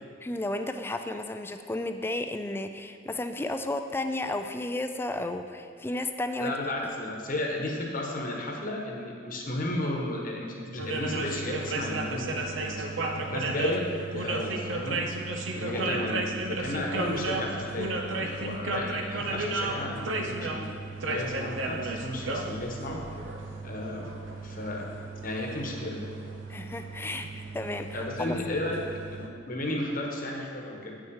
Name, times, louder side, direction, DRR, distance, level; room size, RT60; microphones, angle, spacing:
voice 1, 0.2-6.5 15.7-16.1 26.5-28.4, left 2 dB, 10° left, 7 dB, 0.3 m, -33 dB
voice 2, 6.4-12.9 13.3-15.1 15.5-23.0 23.6-24.1 24.4-24.9 25.2-26.0 27.9-28.8 29.1-31.0, left 1 dB, 45° left, 0 dB, 1.1 m, -33 dB
sound 1, 10.8-29.3, right 2 dB, 85° right, 0.7 m, -34 dB
8.5 x 6.3 x 4.8 m, 2.4 s
head